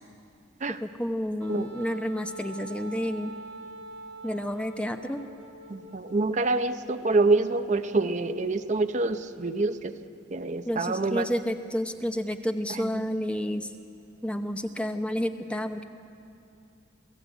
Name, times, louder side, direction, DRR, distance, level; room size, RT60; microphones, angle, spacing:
voice 1, 0.7-3.3 4.2-5.2 10.7-13.7 14.2-15.8, equal, 5° left, 7 dB, 0.8 m, -30 dB
Wind instrument woodwind instrument, 1.4-6.5, right 2 dB, 85° right, 2.6 m, -44 dB
voice 2, 5.7-9.9 10.3-11.3 12.7-13.0, right 3 dB, 40° right, 8 dB, 0.7 m, -26 dB
27.5 x 16.5 x 8.1 m, 2.5 s
head